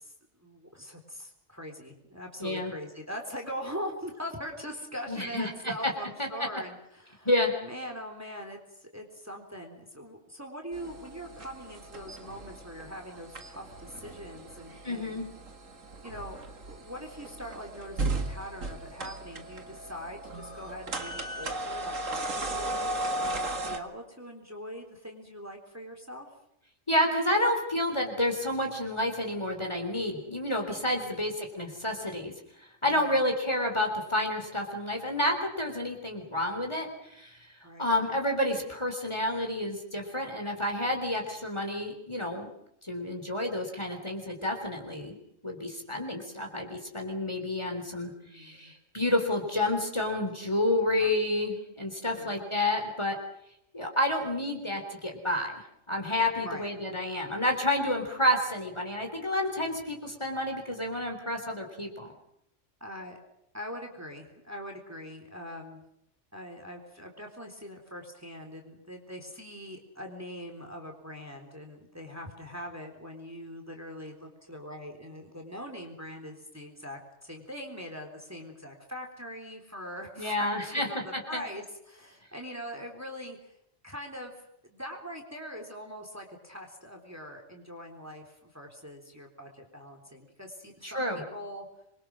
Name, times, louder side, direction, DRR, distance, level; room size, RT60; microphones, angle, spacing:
voice 1, 0.0-7.3 7.6-15.2 16.0-16.4 16.6-26.3 30.9-31.3 32.8-33.2 37.6-37.9 48.3-48.7 51.0-51.6 52.1-52.5 56.4-56.7 62.8-63.2 63.5-65.8 66.3-83.6 83.8-91.7, equal, 10° right, 3 dB, 3.7 m, -42 dB
voice 2, 2.4-2.7 5.1-5.7 6.2-6.3 7.3-7.5 14.8-15.3 26.9-32.3 32.8-36.9 37.2-37.4 37.8-42.5 42.8-53.2 53.7-55.6 55.9-62.1 80.2-80.9 81.1-81.4 90.8-91.2, left 1 dB, 20° left, 2 dB, 3.8 m, -29 dB
sound 1, 10.7-23.8, right 2 dB, 85° right, 2.3 m, -36 dB
27.0 x 23.0 x 6.3 m, 0.78 s
omnidirectional pair, 1.3 m